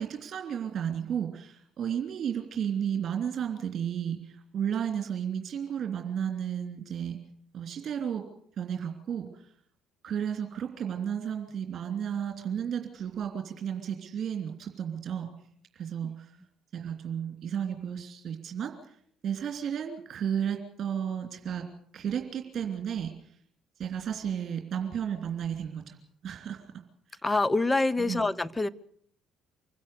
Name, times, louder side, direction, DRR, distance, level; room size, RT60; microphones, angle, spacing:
voice 1, 0.0-7.2 7.5-8.3 8.6-9.4 10.0-15.3 15.7-16.4 16.7-18.9 19.2-21.7 21.9-23.1 23.8-26.0 26.2-26.6 28.1-28.2, right 8 dB, 50° right, 5 dB, 3.1 m, -33 dB
voice 2, 27.2-28.7, left 2 dB, 15° left, 16 dB, 1.0 m, -26 dB
25.0 x 16.0 x 6.9 m, 0.64 s
hypercardioid pair, 55°, 0 cm